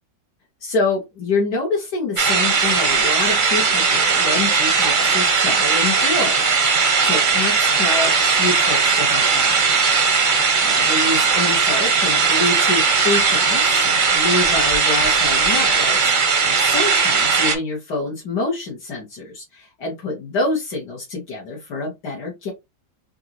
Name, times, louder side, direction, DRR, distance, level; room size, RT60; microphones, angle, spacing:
voice 1, 0.6-6.5 7.0-9.6 10.6-22.5, left 3 dB, 80° left, 1.9 m, -26 dB
sound 1, 2.2-17.5, right 5 dB, 45° right, 0.6 m, -18 dB
4.5 x 2.5 x 2.9 m
omnidirectional pair, 1.7 m